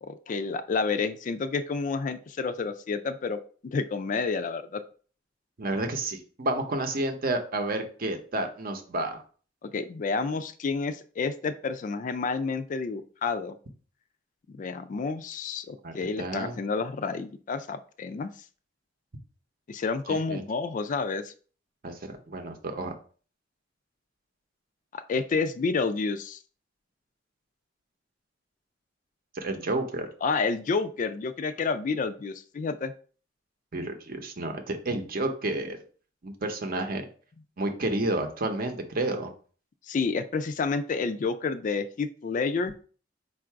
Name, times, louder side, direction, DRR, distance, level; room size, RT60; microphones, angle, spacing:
voice 1, 0.0-4.8 9.6-13.6 14.5-18.3 19.7-21.3 24.9-26.4 30.2-32.9 39.9-42.7, left 4 dB, 40° left, 10 dB, 0.3 m, -29 dB
voice 2, 5.6-9.2 15.8-16.6 20.1-20.4 21.8-22.9 29.3-30.1 33.7-35.8 36.2-37.0 37.6-39.3, right 2 dB, 50° right, 6 dB, 0.7 m, -30 dB
4.6 x 2.5 x 4.5 m, 0.41 s
head